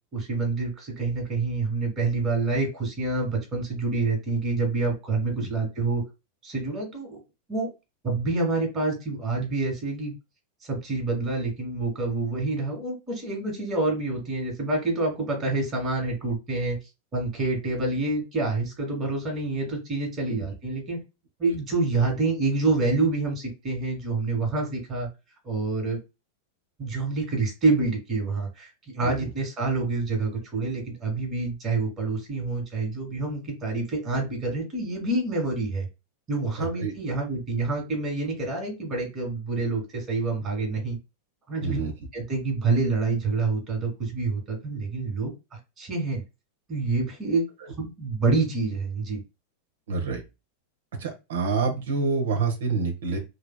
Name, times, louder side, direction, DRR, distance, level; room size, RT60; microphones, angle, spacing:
voice 1, 0.1-6.0 6.4-7.2 7.5-7.7 8.0-10.1 10.6-16.8 17.1-21.0 21.4-25.1 25.4-26.0 26.8-35.9 36.3-41.0 41.5-41.8 42.1-46.2 46.7-47.4 47.8-49.2, right 3 dB, 25° right, 0 dB, 1.7 m, -27 dB
voice 2, 36.6-36.9 41.6-41.9 49.9-50.2 51.0-53.2, right 4 dB, 60° right, 3 dB, 1.0 m, -27 dB
3.3 x 2.7 x 2.2 m, 0.26 s
figure-of-eight pair, 90°, 0 cm